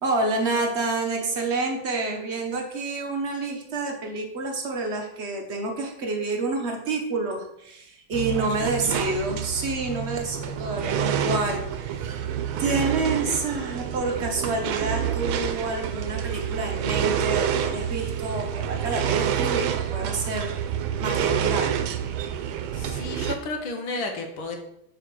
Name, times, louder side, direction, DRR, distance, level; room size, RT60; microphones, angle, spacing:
voice 1, 0.0-12.2 12.6-20.5 21.0-21.8, right 3 dB, 45° right, 3 dB, 0.9 m, -28 dB
sound 1, 8.1-23.4, right 9 dB, 80° right, 1.4 m, -28 dB
voice 2, 22.7-24.6, left 3 dB, 80° left, 3 dB, 1.8 m, -32 dB
6.5 x 4.8 x 4.6 m, 0.77 s
omnidirectional pair, 2.2 m